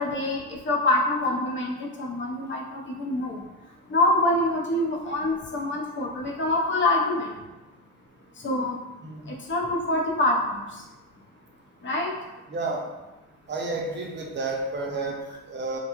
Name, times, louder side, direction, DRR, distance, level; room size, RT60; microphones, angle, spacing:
voice 1, 0.0-3.4 3.9-7.4 8.4-8.8 9.3-10.8 11.8-12.1, left 2 dB, 40° left, -2 dB, 0.7 m, -25 dB
voice 2, 12.5-12.8 13.5-15.8, right 3 dB, 35° right, 0 dB, 0.6 m, -31 dB
2.7 x 2.2 x 2.9 m, 1.0 s
cardioid pair, 90°, 30 cm